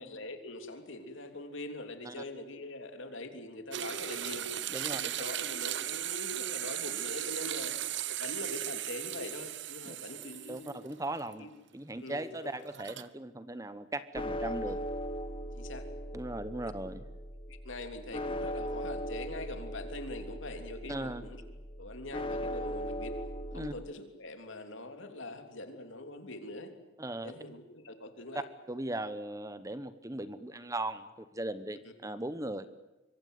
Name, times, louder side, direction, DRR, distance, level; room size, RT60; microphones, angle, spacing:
voice 1, 0.0-4.5 4.9-7.7 8.2-10.7 11.4-11.5 12.0-12.5 14.4-14.8 15.5-15.9 17.5-21.4 21.8-23.2 23.5-26.7 27.2-28.4, left 2 dB, 70° left, 6 dB, 3.3 m, -43 dB
sound 1, 3.7-10.9 11.3-11.4 12.6-13.1, right 12 dB, 60° right, 1.0 m, -37 dB
voice 2, 10.5-11.5 11.7-14.8 16.1-17.0 20.9-21.2 23.5-23.7 27.0-27.3 28.7-32.7, right 1 dB, 15° right, 13 dB, 0.9 m, -38 dB
sound 2, 14.1-23.7, equal, 25° left, 1.8 m, -39 dB
25.5 x 23.5 x 9.3 m, 1.0 s
head